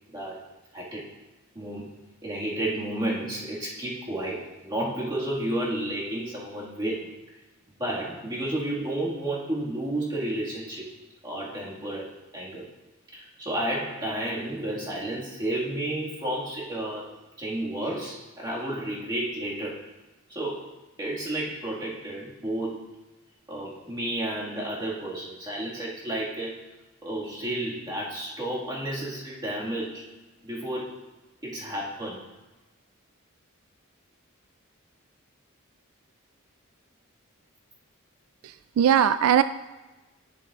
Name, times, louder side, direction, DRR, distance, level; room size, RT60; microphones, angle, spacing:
voice 1, 0.1-0.5 0.7-1.1 1.6-1.9 2.2-7.2 7.8-10.9 11.2-12.7 13.1-19.8 20.3-22.9 23.5-26.7 27.0-30.1 30.4-31.0 31.4-32.3, right 1 dB, 20° right, -5 dB, 1.8 m, -32 dB
voice 2, 38.4-39.4, right 9 dB, 85° right, 14 dB, 0.3 m, -20 dB
10.5 x 6.9 x 2.4 m, 1.1 s
head